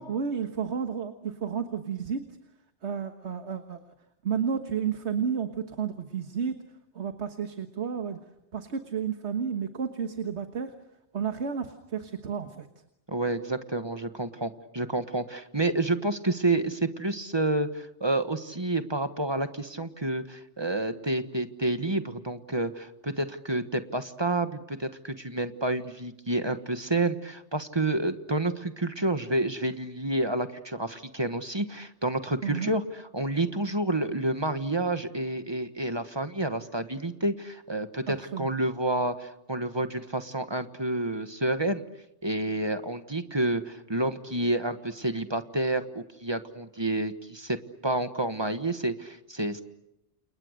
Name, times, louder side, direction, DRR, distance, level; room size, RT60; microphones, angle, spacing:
voice 1, 0.0-2.2 2.8-3.8 4.2-6.6 7.0-8.2 8.5-10.7 11.1-12.7 32.4-32.7 38.1-38.5, right 7 dB, 75° right, 7 dB, 1.8 m, -31 dB
voice 2, 13.1-41.8 42.2-49.6, right 2 dB, 25° right, 9 dB, 1.4 m, -29 dB
30.0 x 29.0 x 6.6 m, 0.88 s
omnidirectional pair, 1.2 m